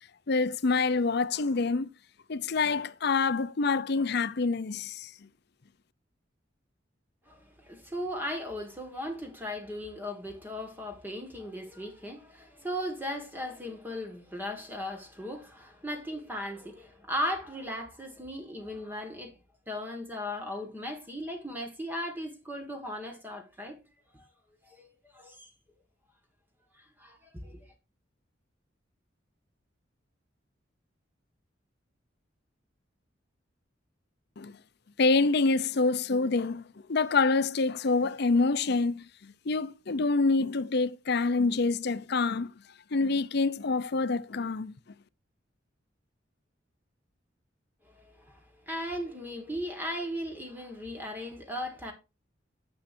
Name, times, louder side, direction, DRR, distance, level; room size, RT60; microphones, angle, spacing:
voice 1, 0.3-1.9 2.3-5.1 34.4-34.5 35.0-36.6 36.9-42.5 42.9-44.7, left 3 dB, 60° left, 0.6 m, -26 dB
voice 2, 7.3-19.4 19.7-23.8 24.1-24.2 24.7-25.5 26.7-27.7 47.9-48.4 48.7-51.9, equal, 10° right, 1.7 m, -37 dB
10.5 x 7.5 x 2.7 m
head